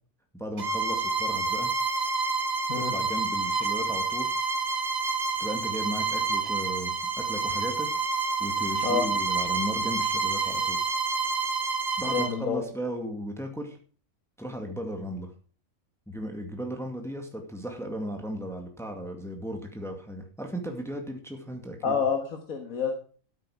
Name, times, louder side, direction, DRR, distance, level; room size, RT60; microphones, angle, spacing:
voice 1, 0.3-1.7 2.7-4.3 5.4-7.9 8.4-10.9 12.0-13.8 14.4-15.3 16.1-21.9, equal, ahead, 3 dB, 2.0 m, -36 dB
Bowed string instrument, 0.6-12.4, right 4 dB, 50° right, 1.5 m, -28 dB
voice 2, 12.1-12.6 21.8-22.9, left 6 dB, 80° left, 3 dB, 2.0 m, -28 dB
12.5 x 9.3 x 4.9 m, 0.41 s
omnidirectional pair, 1.4 m